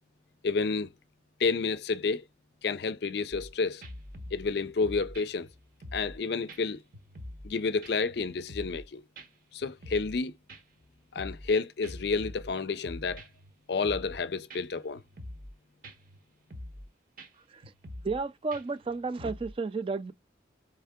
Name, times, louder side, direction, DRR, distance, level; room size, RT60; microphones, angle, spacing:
voice 1, 0.4-0.9 1.4-2.2 2.6-3.8 4.3-5.5 5.9-6.8 7.4-9.0 9.5-10.3 11.1-13.2 13.7-15.0, left 4 dB, 60° left, 0.5 m, -30 dB
sound 1, 3.3-3.5 3.8-6.2 6.5-6.6 6.9-7.5 7.8-8.9 9.2-9.3 9.6-10.2 10.5-11.5 11.8-13.5 13.8-14.2 14.5-14.6 14.9-15.5 15.8-16.2 16.5-16.9 17.2-17.3 17.6-18.2 18.5-19.5, left 1 dB, 45° right, 1.0 m, -45 dB
voice 2, 18.0-20.1, right 4 dB, 30° right, 0.3 m, -32 dB
4.6 x 3.3 x 3.5 m
head